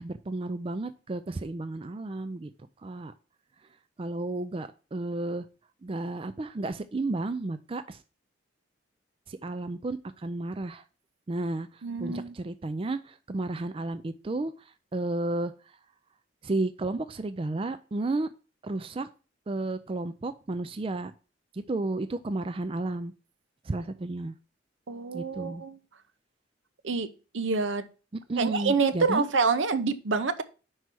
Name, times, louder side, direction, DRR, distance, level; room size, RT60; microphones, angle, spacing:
voice 1, 0.0-2.5 2.8-3.1 4.0-5.5 5.8-8.0 9.3-10.8 11.3-14.5 14.9-15.5 16.4-18.3 18.6-19.1 19.5-21.1 21.5-23.1 23.6-24.3 25.1-25.6 28.1-29.2, right 2 dB, 30° right, 10 dB, 0.4 m, -32 dB
voice 2, 11.8-12.3 24.9-25.8 26.8-27.1 27.3-27.9 28.4-30.4, right 4 dB, 80° right, 10 dB, 0.7 m, -27 dB
5.6 x 4.7 x 6.0 m, 0.34 s
head